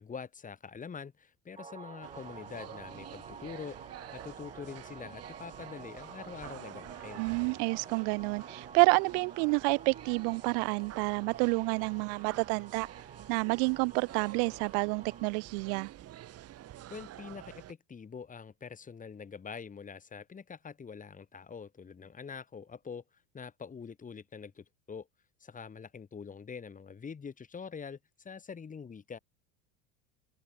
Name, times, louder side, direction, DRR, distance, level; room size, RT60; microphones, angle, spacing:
voice 1, 0.0-3.8 4.1-7.2 16.9-25.1 25.4-29.2, left 6 dB, 20° left, 5.8 m, -45 dB
sound 1, 1.6-15.3, right 5 dB, 15° right, 5.6 m, -51 dB
sound 2, 2.0-17.7, right 13 dB, 45° right, 5.6 m, -48 dB
voice 2, 7.2-12.9 13.3-15.9, right 40 dB or more, 65° right, 1.1 m, -29 dB
supercardioid pair, 120°, 35 cm